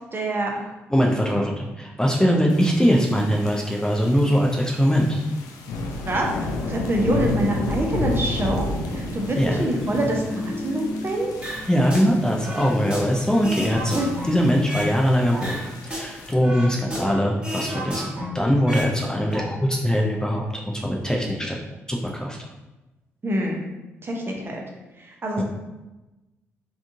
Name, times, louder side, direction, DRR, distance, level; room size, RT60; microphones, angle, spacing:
voice 1, 0.1-0.6 6.1-6.3 6.7-11.3 14.0-14.1 23.2-23.6 24.0-24.6 25.0-25.4, right 1 dB, 35° right, 0 dB, 0.7 m, -25 dB
voice 2, 0.9-5.2 9.3-9.7 11.7-21.6 21.9-22.4 25.4-25.5, equal, 10° left, -1 dB, 0.5 m, -22 dB
sound 1, 2.5-16.3, left 2 dB, 65° left, 0.4 m, -32 dB
sound 2, 9.4-12.0 12.3-12.4, left 2 dB, 50° left, 0.9 m, -35 dB
sound 3, 11.4-12.1 12.4-14.9 15.3-17.2 17.4-18.9 19.2-19.4, right 1 dB, 15° right, 1.2 m, -32 dB
3.5 x 2.3 x 2.6 m, 1.1 s
hypercardioid pair, 40°, 7 cm